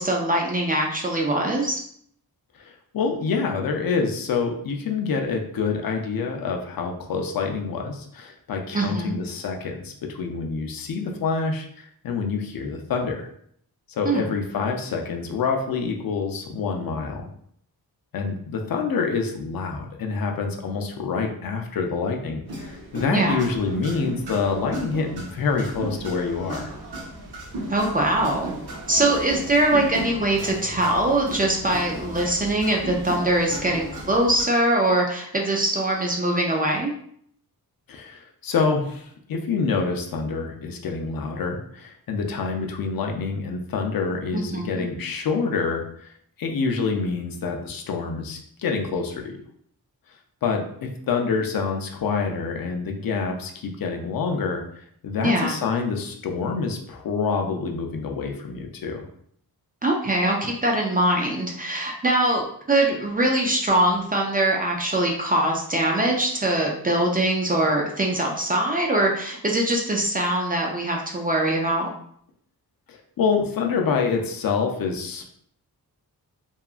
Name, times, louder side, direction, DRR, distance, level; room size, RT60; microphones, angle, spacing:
voice 1, 0.0-1.8 8.7-9.2 14.0-14.3 23.1-23.4 27.7-28.6 28.9-36.9 44.3-44.8 55.2-55.6 59.8-71.9, right 1 dB, 25° right, 0 dB, 0.3 m, -22 dB
voice 2, 2.6-13.3 13.9-17.3 18.1-26.7 37.9-46.1 46.4-49.4 50.4-54.6 55.0-59.1 72.9-75.2, left 5 dB, 65° left, 3 dB, 0.5 m, -27 dB
sound 1, 22.5-34.4, right 1 dB, 85° right, 0.8 m, -35 dB
2.8 x 2.3 x 2.3 m, 0.66 s
wide cardioid pair, 130°, 38 cm